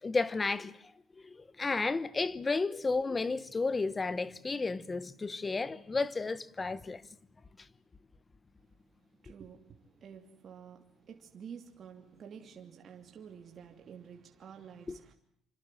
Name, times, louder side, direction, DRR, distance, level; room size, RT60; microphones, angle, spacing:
voice 1, 0.0-0.7 1.2-7.1 14.9-15.0, left 3 dB, 15° left, 1.0 m, -32 dB
voice 2, 9.1-15.1, right 7 dB, 35° right, 2.8 m, -50 dB
26.5 x 26.0 x 7.7 m
cardioid pair, 165°, 0 cm